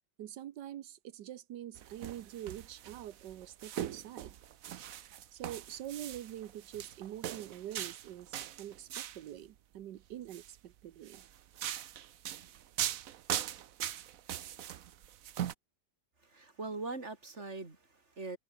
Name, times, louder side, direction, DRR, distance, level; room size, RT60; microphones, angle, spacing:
voice 1, 0.2-4.4 5.3-11.2, right 12 dB, 90° right, 1.5 m, -45 dB
sound 1, 1.8-9.3 10.1-10.5 11.0-15.5, right 11 dB, 60° right, 1.1 m, -41 dB
voice 2, 16.2-18.4, right 3 dB, 40° right, 3.9 m, -42 dB
omnidirectional pair, 1.8 m